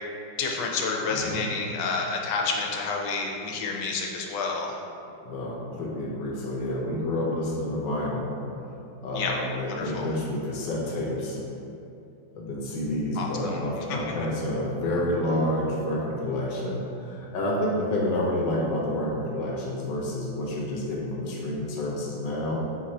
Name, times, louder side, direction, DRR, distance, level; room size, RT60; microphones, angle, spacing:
voice 1, 0.4-4.8 9.1-9.3 9.7-10.1 13.2-13.6 13.9-14.0, left 4 dB, 90° left, 0 dB, 1.4 m, -29 dB
voice 2, 1.1-1.4 5.2-8.3 9.0-11.4 12.4-22.6, left 1 dB, 75° left, -2 dB, 1.2 m, -29 dB
4.5 x 2.5 x 4.2 m, 2.7 s
omnidirectional pair, 2.1 m